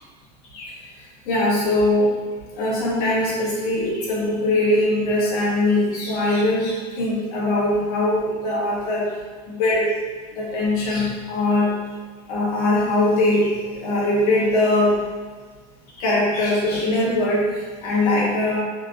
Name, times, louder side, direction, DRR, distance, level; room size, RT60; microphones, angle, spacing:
voice 1, 1.3-2.1 2.6-9.1 9.5-9.9 10.3-11.7 12.3-14.9 16.0-18.6, left 1 dB, 65° left, -6 dB, 1.1 m, -21 dB
3.4 x 2.6 x 2.4 m, 1.5 s
supercardioid pair, 165°, 21 cm